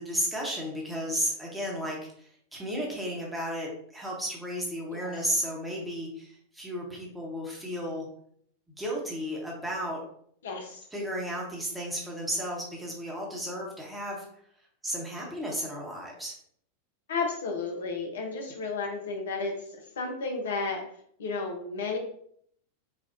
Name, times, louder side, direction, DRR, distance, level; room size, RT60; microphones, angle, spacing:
voice 1, 0.0-8.0 8.8-10.0 10.9-14.2 14.8-16.3, equal, 5° right, -2 dB, 1.1 m, -33 dB
voice 2, 10.4-10.8 17.1-19.6 20.0-20.8 21.2-22.0, left 4 dB, 60° left, 2 dB, 0.6 m, -32 dB
4.1 x 2.3 x 2.7 m, 0.65 s
figure-of-eight pair, 90°, 0 cm